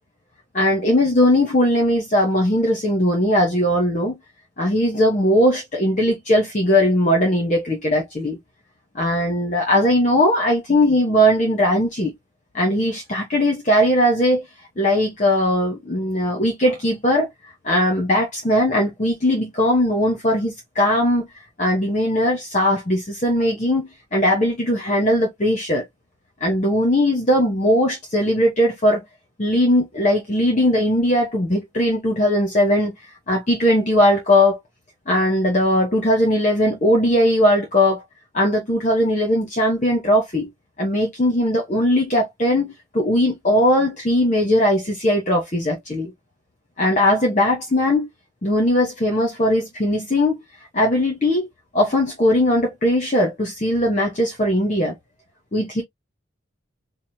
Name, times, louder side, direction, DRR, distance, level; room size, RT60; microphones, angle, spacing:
voice 1, 0.5-4.2 4.6-8.4 8.9-12.1 12.5-14.4 14.8-17.3 17.6-21.3 21.6-25.8 26.4-29.0 29.4-32.9 33.3-34.6 35.1-38.0 38.3-40.5 40.8-46.1 46.8-48.1 48.4-50.4 50.7-51.5 51.7-54.9 55.5-55.8, left 1 dB, 35° left, 1.1 m, -19 dB
5.1 x 2.1 x 2.7 m
head